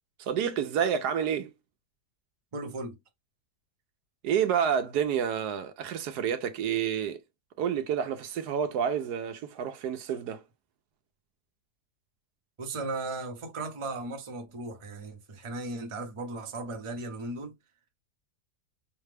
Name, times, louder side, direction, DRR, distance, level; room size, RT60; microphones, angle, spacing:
voice 1, 0.2-1.5 4.2-7.2 7.6-10.4, right 8 dB, 80° right, 1.1 m, -29 dB
voice 2, 2.5-3.0 12.6-17.6, right 2 dB, 25° right, 0.7 m, -36 dB
5.6 x 2.2 x 3.3 m
omnidirectional pair, 1.7 m